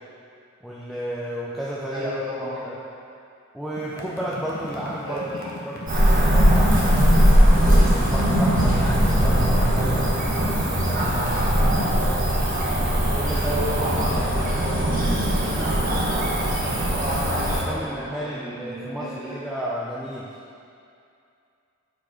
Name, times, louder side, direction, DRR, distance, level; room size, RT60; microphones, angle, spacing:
voice 1, 0.6-2.1 2.6-2.7 3.5-5.2 5.6-7.5 7.9-11.3 13.1-13.6 14.1-14.3 17.7-20.3, equal, ahead, -7 dB, 0.4 m, -33 dB
voice 2, 1.9-2.6 5.0-5.5 13.4-15.3 16.9-19.4, equal, 20° right, -9 dB, 1.6 m, -32 dB
sound 1, 3.8-11.9, equal, 45° left, 0.8 m, -36 dB
Cricket / Motor vehicle (road), 5.9-17.6, equal, 40° right, 1.3 m, -20 dB
6.9 x 4.7 x 4.3 m, 2.5 s
head